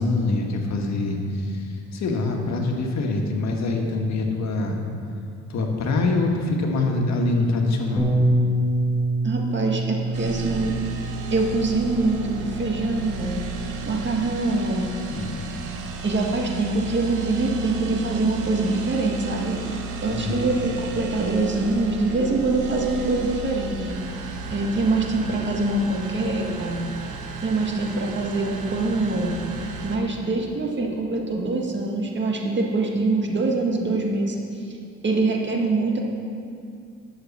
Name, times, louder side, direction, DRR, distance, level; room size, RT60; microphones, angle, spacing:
voice 1, 0.0-1.6 1.9-4.8 5.5-8.1 15.1-15.4 20.1-20.4, left 2 dB, 65° left, 2 dB, 1.6 m, -24 dB
Bass guitar, 8.0-14.2, right 1 dB, 5° left, 1.9 m, -27 dB
voice 2, 9.2-10.8 11.3-13.4 13.9-14.9 16.0-26.9 27.4-29.4 29.8-34.8 35.0-36.0, right 3 dB, 40° right, 0 dB, 1.8 m, -24 dB
sound 1, 10.1-30.0, right 3 dB, 80° right, 1.2 m, -34 dB
11.5 x 6.5 x 7.2 m, 2.5 s
cardioid pair, 90°, 30 cm